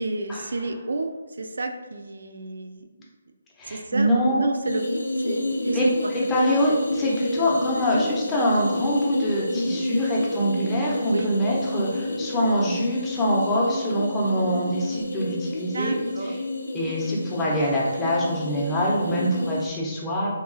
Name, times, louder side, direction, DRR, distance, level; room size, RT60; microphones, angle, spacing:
voice 1, 0.0-2.9 3.7-6.1 11.1-11.3 15.7-16.4, right 2 dB, 80° right, 6 dB, 0.3 m, -30 dB
voice 2, 3.6-4.5 5.7-16.0 16.2-16.4 16.7-20.3, equal, 10° left, -5 dB, 0.5 m, -24 dB
sound 1, 4.6-19.7, left 1 dB, 90° left, 0.4 m, -29 dB
2.8 x 2.3 x 2.5 m, 1.2 s
hypercardioid pair, 155°, 0 cm